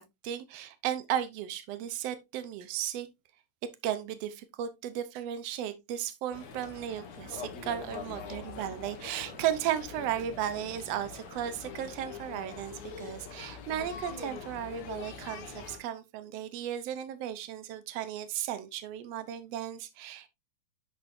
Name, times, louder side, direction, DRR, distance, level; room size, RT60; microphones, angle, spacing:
voice 1, 0.0-3.1 3.6-20.3, right 10 dB, 90° right, 1.4 m, -35 dB
sound 1, 6.3-15.8, left 6 dB, 60° left, 2.4 m, -43 dB
10.5 x 6.7 x 2.6 m
omnidirectional pair, 4.0 m